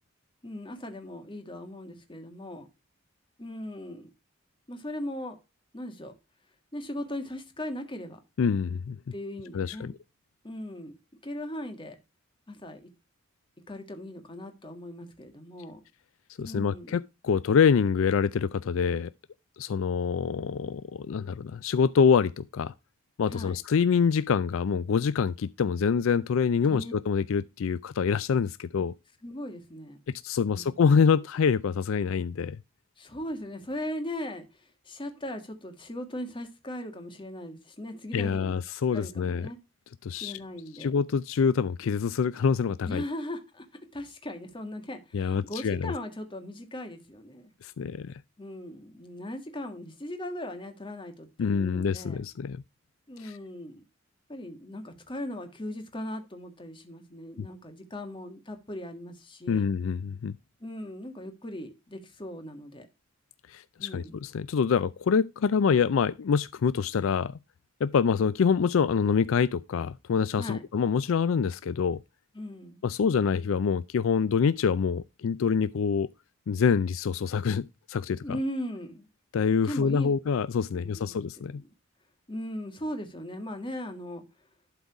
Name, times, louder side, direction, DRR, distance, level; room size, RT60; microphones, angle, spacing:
voice 1, 0.4-2.7 3.4-4.1 4.7-5.4 5.7-6.1 6.7-8.2 9.1-9.9 10.4-10.9 11.2-12.0 12.5-12.9 13.7-15.8 16.4-17.0 23.3-23.5 26.7-26.9 29.2-30.0 30.4-30.7 33.0-38.6 38.9-39.6 40.1-40.9 42.9-47.5 48.4-52.2 53.1-53.8 54.3-59.7 60.6-62.9 63.8-64.1 70.4-70.6 72.3-72.8 78.2-79.1 79.6-80.2 80.7-81.2 81.4-81.6 82.3-84.2, left 1 dB, 25° left, 1.7 m, -38 dB
voice 2, 8.4-9.0 9.5-9.9 16.4-19.1 19.6-22.7 23.2-28.9 30.2-32.6 38.1-39.5 40.0-40.4 40.8-43.0 45.1-45.9 47.6-48.2 51.4-52.6 53.2-53.4 57.4-57.5 59.5-60.4 63.5-67.4 67.8-72.0 72.8-76.1 76.5-78.4 79.3-81.6, left 6 dB, 70° left, 0.4 m, -26 dB
11.5 x 4.0 x 4.7 m
head